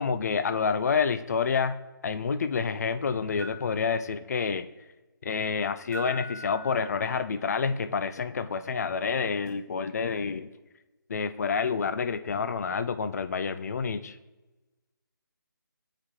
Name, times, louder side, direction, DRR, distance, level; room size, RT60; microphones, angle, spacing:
voice 1, 0.0-1.8 2.0-4.7 5.2-10.5 11.1-14.2, left 5 dB, 50° left, 11 dB, 0.4 m, -28 dB
sound 1, 3.4-3.6 5.9-7.1 9.5-9.6, right 1 dB, 5° right, 1.2 m, -41 dB
8.5 x 4.9 x 2.9 m, 1.1 s
figure-of-eight pair, 160°, 12 cm